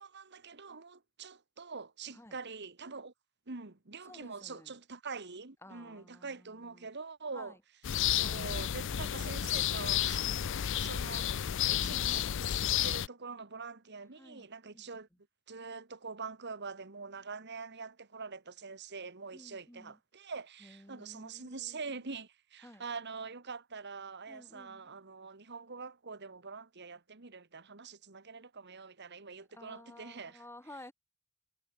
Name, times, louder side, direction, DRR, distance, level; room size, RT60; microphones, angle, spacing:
voice 1, 0.0-3.1 3.5-7.6 8.1-11.3 11.7-12.3 12.6-15.1 15.5-30.4, right 4 dB, 55° right, 1.8 m, -45 dB
voice 2, 4.0-4.8 5.6-6.9 7.3-7.6 14.2-15.2 19.3-20.0 20.6-22.0 22.6-22.8 24.3-24.9 29.4-30.9, left 1 dB, 10° left, 5.8 m, -54 dB
sound 1, 7.8-13.1, left 10 dB, 60° left, 0.5 m, -31 dB
head